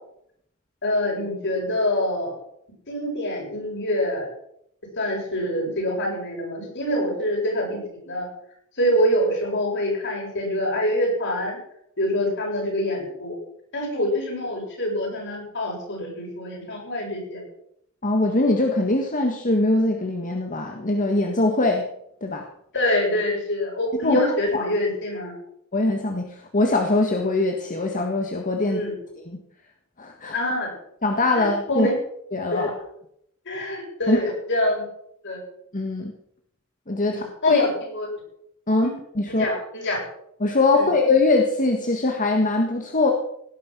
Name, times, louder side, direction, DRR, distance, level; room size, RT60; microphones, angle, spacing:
voice 1, 0.8-2.3 2.9-4.3 5.0-7.8 8.0-8.3 8.8-11.6 12.0-13.3 13.7-17.4 22.7-25.3 28.7-28.9 30.3-30.7 31.4-31.9 32.5-32.7 33.5-34.8 35.2-35.4 37.1-38.1 38.8-38.9 39.3-40.0 40.7-40.9, left 1 dB, 60° left, -1 dB, 7.7 m, -25 dB
voice 2, 18.0-21.9 22.2-22.4 24.0-24.2 24.5-24.7 25.7-28.8 29.1-29.4 30.0-30.4 31.0-31.9 32.3-32.7 34.1-34.2 35.7-36.1 36.9-37.6 38.7-39.6 40.4-43.1, left 2 dB, 40° left, 3 dB, 1.7 m, -22 dB
18.0 x 11.0 x 6.2 m, 0.73 s
head